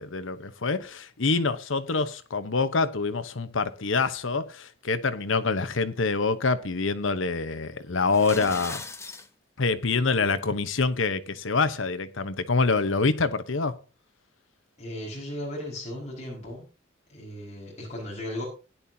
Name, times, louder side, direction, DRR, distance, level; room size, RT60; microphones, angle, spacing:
voice 1, 0.0-8.8 9.6-13.7, left 4 dB, 70° left, 1.0 m, -26 dB
sound 1, 8.0-9.3, left 3 dB, 15° left, 1.0 m, -38 dB
voice 2, 14.8-16.7 17.1-18.5, left 1 dB, 35° left, 5.3 m, -36 dB
16.5 x 10.5 x 2.8 m
head